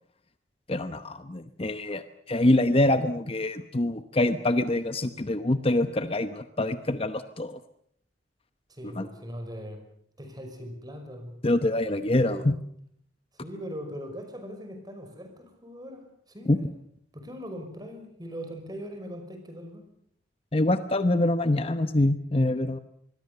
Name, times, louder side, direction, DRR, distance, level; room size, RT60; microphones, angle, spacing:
voice 1, 0.7-7.6 9.0-9.1 11.4-12.6 16.5-16.6 20.5-22.8, left 1 dB, 30° left, 10 dB, 0.9 m, -25 dB
voice 2, 8.7-9.8 10.2-11.4 12.1-12.5 13.4-16.6 17.1-19.9, equal, 20° right, 6 dB, 5.5 m, -40 dB
25.5 x 21.5 x 6.9 m, 0.67 s
head